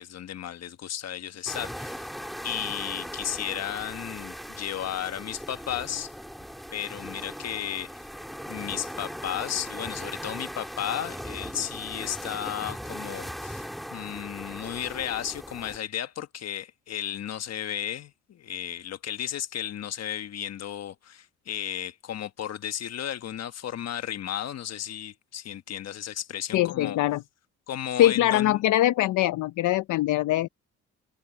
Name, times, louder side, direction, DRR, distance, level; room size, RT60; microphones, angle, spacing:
voice 1, 0.0-2.1 2.4-6.1 6.7-7.9 8.5-27.0 27.7-28.6, left 10 dB, 55° left, 1.3 m, -34 dB
sound 1, 1.5-15.8, equal, ahead, 3.5 m, -39 dB
voice 2, 26.5-27.2 28.0-30.5, left 14 dB, 75° left, 0.6 m, -22 dB
open air
cardioid pair, 90°, 30 cm